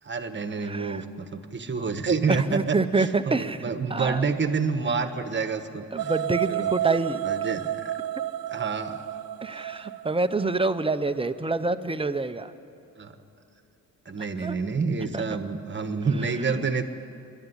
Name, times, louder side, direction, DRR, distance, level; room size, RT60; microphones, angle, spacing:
voice 1, 0.0-6.1 6.5-6.7 7.2-7.9 8.5-9.0 13.0-13.2 14.1-16.8, right 4 dB, 30° right, 9 dB, 1.2 m, -28 dB
voice 2, 0.6-1.0 2.3-4.2 5.9-7.3 9.4-12.5 14.4-14.6 15.1-15.2 16.2-16.6, right 3 dB, 15° right, 10 dB, 0.6 m, -27 dB
sound 1, 6.0-11.0, right 12 dB, 65° right, 0.6 m, -31 dB
26.5 x 12.0 x 9.9 m, 2.6 s
wide cardioid pair, 135°, 36 cm